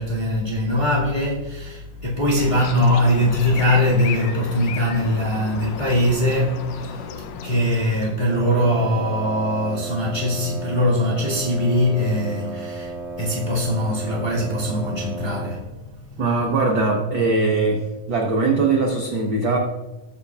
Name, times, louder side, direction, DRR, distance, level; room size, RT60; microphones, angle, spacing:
voice 1, 0.0-7.0 7.3-15.6, left 1 dB, 25° left, 1.1 m, -21 dB
sound 1, 2.4-8.4, left 6 dB, 80° left, 1.6 m, -34 dB
Wind instrument woodwind instrument, 8.2-15.7, right 3 dB, 50° left, 0.7 m, -34 dB
voice 2, 16.2-17.8 18.1-19.6, right 3 dB, 75° right, 1.1 m, -20 dB
19.5 x 7.1 x 2.4 m
omnidirectional pair, 3.8 m